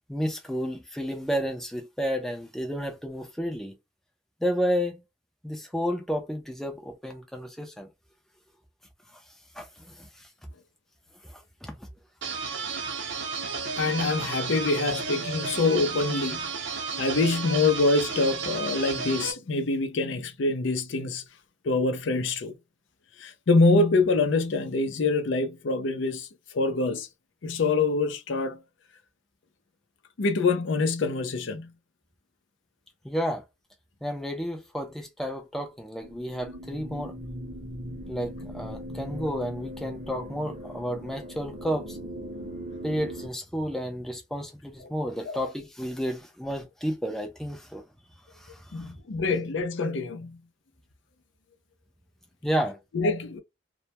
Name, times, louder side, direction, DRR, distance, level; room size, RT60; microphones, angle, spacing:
voice 1, 0.1-3.8 4.4-5.0 5.4-7.9 9.1-9.2 9.5-10.3 11.2-11.9 33.0-33.4 34.0-37.1 38.1-42.0 42.8-47.8 48.3-48.9 52.4-52.8, equal, ahead, 0.4 m, -31 dB
sound 1, 12.2-19.3, right 5 dB, 70° right, 0.6 m, -33 dB
voice 2, 13.8-16.4 17.0-21.2 21.6-22.5 23.2-26.3 26.5-27.1 27.4-28.6 30.2-31.7 45.3-45.4 48.7-50.4 52.9-53.4, left 3 dB, 75° left, 0.5 m, -25 dB
sound 2, 36.0-43.3, equal, 30° right, 0.6 m, -39 dB
2.2 x 2.1 x 2.8 m
head